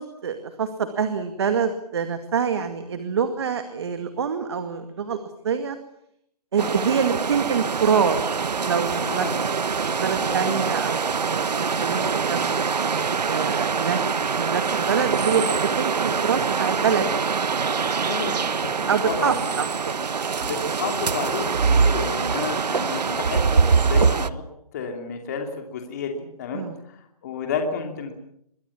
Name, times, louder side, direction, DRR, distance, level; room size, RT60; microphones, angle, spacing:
voice 1, 0.0-5.2 5.4-5.8 6.5-8.2 8.6-9.3 9.7-12.8 13.3-17.1 18.9-20.5 26.5-26.8, right 6 dB, 40° right, 8 dB, 2.2 m, -26 dB
sound 1, 6.6-24.3, right 5 dB, 85° right, 1.2 m, -24 dB
voice 2, 9.1-9.4 10.3-10.6 18.1-18.4 18.8-19.5 20.4-24.4 24.7-27.0 27.2-28.1, left 5 dB, 25° left, 3 dB, 2.9 m, -31 dB
26.5 x 23.5 x 7.2 m, 0.73 s
hypercardioid pair, 170°, 21 cm